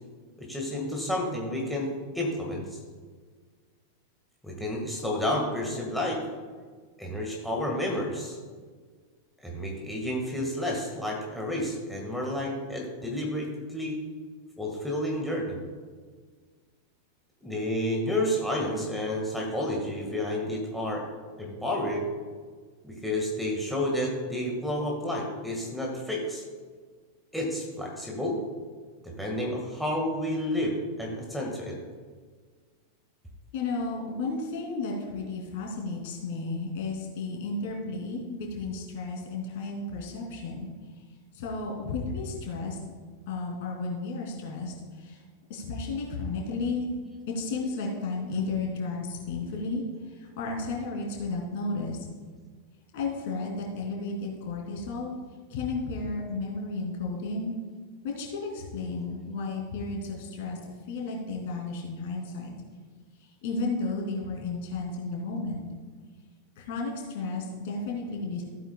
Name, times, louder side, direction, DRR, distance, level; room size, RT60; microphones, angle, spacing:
voice 1, 0.4-1.9 2.1-2.7 4.4-6.2 7.0-8.4 9.4-14.0 14.6-15.6 17.4-21.0 21.4-22.0 22.8-26.4 27.3-28.4 29.0-31.8, left 1 dB, ahead, -2 dB, 1.7 m, -30 dB
voice 2, 33.5-40.7 41.3-42.8 43.3-45.2 45.5-46.9 47.3-52.0 52.9-55.1 55.5-57.5 58.0-62.5 63.2-65.6 66.6-68.4, left 3 dB, 50° left, -1 dB, 2.8 m, -33 dB
15.0 x 8.8 x 2.3 m, 1.5 s
figure-of-eight pair, 90°, 0 cm